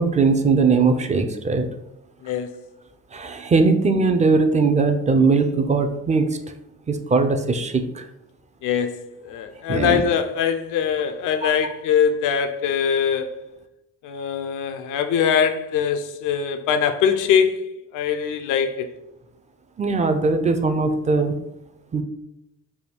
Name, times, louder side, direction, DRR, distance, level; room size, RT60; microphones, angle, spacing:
voice 1, 0.0-1.7 3.1-6.4 6.9-8.1 9.7-10.0 11.4-11.5 19.8-21.3 21.9-22.0, right 4 dB, 25° right, 0.4 m, -20 dB
voice 2, 2.2-2.5 8.6-13.4 14.0-17.6 17.9-18.9, left 7 dB, 85° left, 0.5 m, -22 dB
3.5 x 2.3 x 4.4 m
cardioid pair, 90°, 30 cm